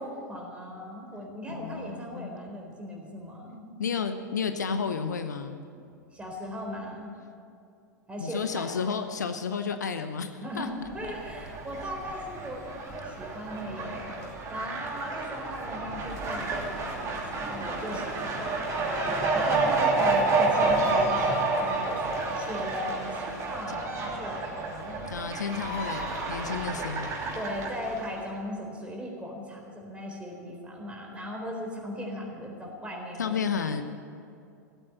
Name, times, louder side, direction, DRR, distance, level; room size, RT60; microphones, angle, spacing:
voice 1, 0.0-3.6 5.7-5.8 6.1-7.1 8.1-8.7 10.4-14.2 14.5-25.0 27.3-33.4, equal, 10° right, -1 dB, 4.1 m, -38 dB
voice 2, 1.5-2.3 3.8-5.6 8.2-10.7 23.7-23.8 25.1-27.2 33.2-33.8, left 6 dB, 70° left, 9 dB, 0.9 m, -32 dB
Fowl, 10.9-28.2, right 3 dB, 30° right, 3.0 m, -29 dB
17.0 x 8.7 x 9.1 m, 2.5 s
figure-of-eight pair, 90°, 10 cm